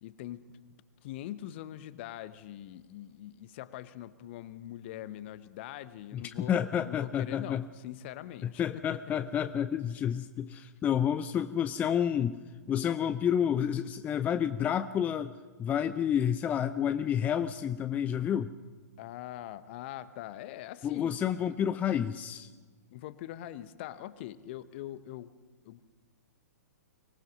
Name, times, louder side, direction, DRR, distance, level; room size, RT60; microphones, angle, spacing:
voice 1, 0.0-0.6 1.0-6.6 6.9-9.0 19.0-21.2 22.9-25.3 25.6-25.8, left 13 dB, 40° left, 14 dB, 1.1 m, -43 dB
voice 2, 6.1-7.6 8.4-12.4 12.7-15.3 15.6-18.5 20.8-22.5, left 9 dB, 15° left, 12 dB, 0.5 m, -29 dB
24.0 x 19.0 x 6.2 m, 1.4 s
figure-of-eight pair, 115°, 9 cm